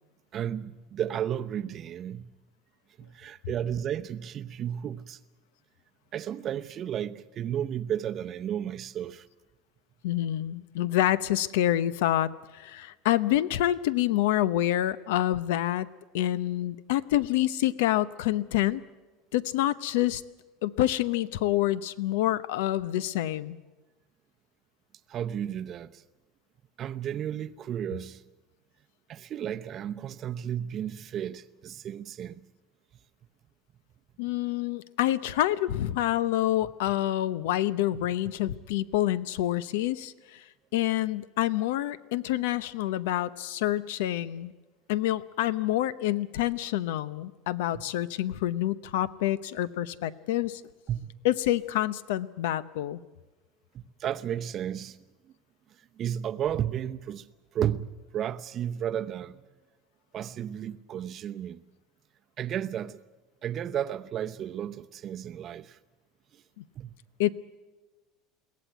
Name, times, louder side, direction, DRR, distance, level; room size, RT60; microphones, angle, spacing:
voice 1, 0.3-2.3 3.0-5.2 6.1-9.3 25.1-26.0 26.8-28.2 29.1-32.5 37.9-38.1 47.7-47.8 50.9-51.1 53.7-55.0 56.0-57.3 57.5-57.9 58.1-59.4 60.1-61.6 62.4-63.0 63.4-65.8 66.8-67.0, right 10 dB, 30° right, 0.7 m, -33 dB
voice 2, 10.0-15.9 16.1-18.8 19.3-20.2 20.6-23.6 34.2-40.4 40.7-44.5 44.9-50.6 51.2-53.0 66.6-66.7 67.2-67.3, left 13 dB, 85° left, 0.8 m, -27 dB
22.5 x 17.0 x 9.2 m
cardioid pair, 165°, 0 cm